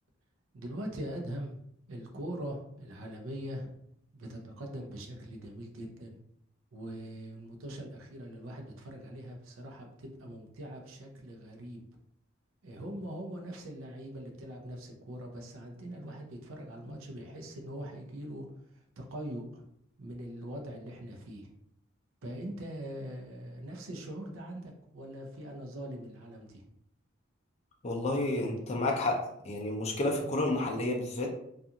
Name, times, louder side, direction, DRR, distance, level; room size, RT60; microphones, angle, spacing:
voice 1, 0.5-1.6 1.9-3.8 4.1-6.2 6.7-11.8 12.6-18.4 18.7-19.6 20.0-21.5 22.2-26.7, right 1 dB, 80° right, 1 dB, 0.5 m, -42 dB
voice 2, 27.8-31.3, left 2 dB, 30° left, -1 dB, 0.4 m, -30 dB
2.4 x 2.4 x 2.7 m, 0.73 s
head